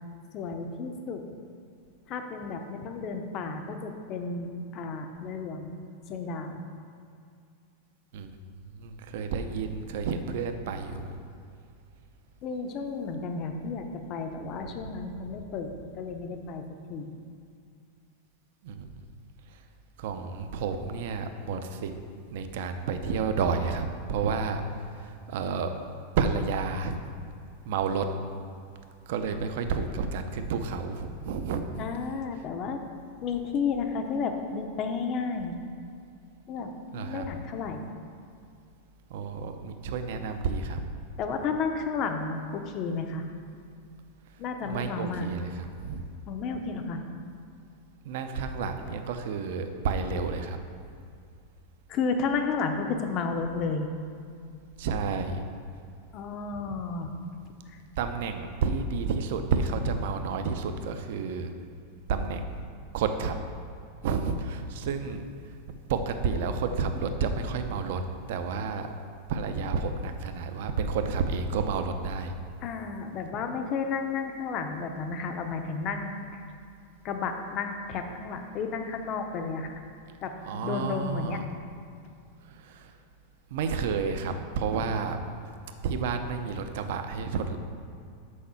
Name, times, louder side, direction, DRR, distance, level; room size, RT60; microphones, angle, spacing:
voice 1, 0.3-1.2 2.1-5.8 6.1-6.6 12.4-16.6 16.9-17.2 31.8-32.8 33.2-35.6 36.5-37.9 41.2-43.2 44.4-45.3 46.3-47.0 51.9-53.9 56.1-57.1 57.7-57.8 72.6-76.4 77.0-79.8 80.2-81.4, left 5 dB, 25° left, 5 dB, 0.6 m, -32 dB
voice 2, 8.7-11.2 18.6-18.9 20.0-21.9 22.3-24.6 25.3-25.7 26.2-27.0 27.7-28.1 29.1-31.9 36.9-37.2 39.1-40.8 44.7-45.5 45.8-46.0 48.0-50.6 54.8-55.4 58.0-61.5 62.1-62.6 62.9-63.4 64.0-65.2 65.9-68.0 68.3-68.9 69.3-72.3 80.5-81.4 82.5-82.9 83.5-85.2 85.8-87.6, right 5 dB, 50° right, 7 dB, 0.6 m, -30 dB
6.4 x 5.3 x 7.0 m, 2.3 s
supercardioid pair, 180°, 0 cm